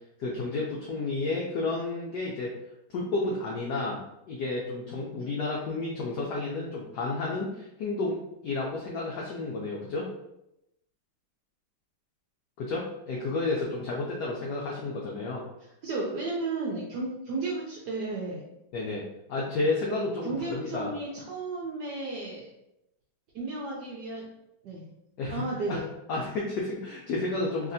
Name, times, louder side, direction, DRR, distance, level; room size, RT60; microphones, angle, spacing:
voice 1, 0.2-2.5 2.9-4.0 4.3-10.1 12.6-15.4 18.7-19.0 19.3-20.9 25.2-25.8 26.1-27.7, left 3 dB, 85° left, -2 dB, 0.9 m, -31 dB
voice 2, 15.8-18.4 20.2-22.5 23.3-24.3 24.6-24.8 25.3-25.8, right 3 dB, 75° right, -4 dB, 0.9 m, -33 dB
3.2 x 2.7 x 2.6 m, 0.85 s
omnidirectional pair, 2.3 m